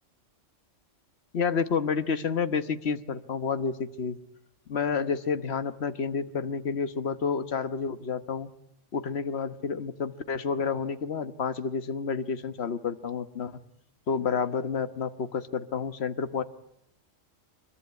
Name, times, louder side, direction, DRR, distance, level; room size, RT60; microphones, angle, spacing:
voice 1, 1.3-4.2 4.7-8.5 8.9-13.6 14.1-16.4, left 5 dB, 55° left, 11 dB, 1.4 m, -30 dB
24.0 x 22.5 x 9.6 m, 0.76 s
omnidirectional pair, 1.3 m